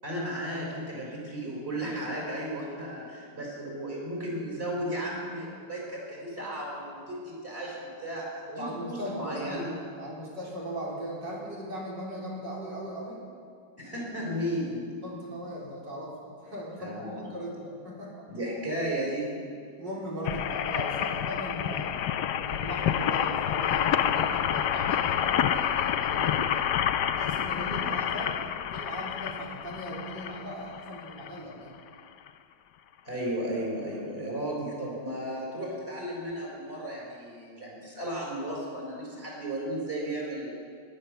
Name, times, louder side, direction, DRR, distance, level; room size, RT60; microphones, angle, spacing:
voice 1, 0.0-8.3 8.5-9.7 13.8-14.9 16.8-17.2 18.3-19.3 27.7-27.9 33.0-40.5, right 1 dB, 30° right, -4 dB, 5.5 m, -34 dB
voice 2, 8.5-9.4 10.0-13.2 15.0-18.1 19.8-21.9 22.4-26.7 27.1-28.4 28.7-31.7, equal, 70° right, -4 dB, 4.5 m, -38 dB
sound 1, 20.2-31.4 32.0-32.1 32.3-32.4, left 9 dB, 70° left, 1.2 m, -28 dB
18.0 x 11.5 x 6.9 m, 2.1 s
omnidirectional pair, 2.0 m